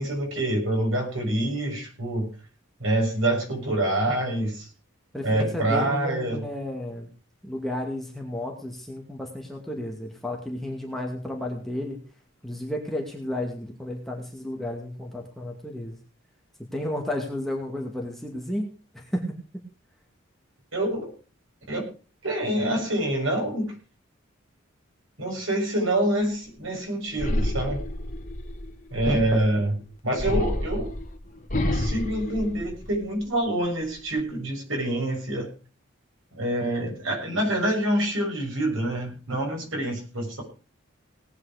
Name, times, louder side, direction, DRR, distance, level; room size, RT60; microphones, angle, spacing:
voice 1, 0.0-2.3 2.8-4.7 5.2-6.4 20.7-21.1 21.7-21.9 22.2-23.7 25.2-27.9 28.9-29.8 30.0-30.9 31.7-35.5 36.3-40.4, right 1 dB, 75° right, 1 dB, 6.8 m, -26 dB
voice 2, 5.1-7.1 7.4-12.0 12.4-16.0 16.7-18.7 18.9-19.4, left 1 dB, ahead, -1 dB, 2.4 m, -32 dB
sound 1, 27.1-29.6 30.2-33.2 33.6-34.2, left 1 dB, 40° left, 1.9 m, -29 dB
18.5 x 9.6 x 5.1 m, 0.36 s
head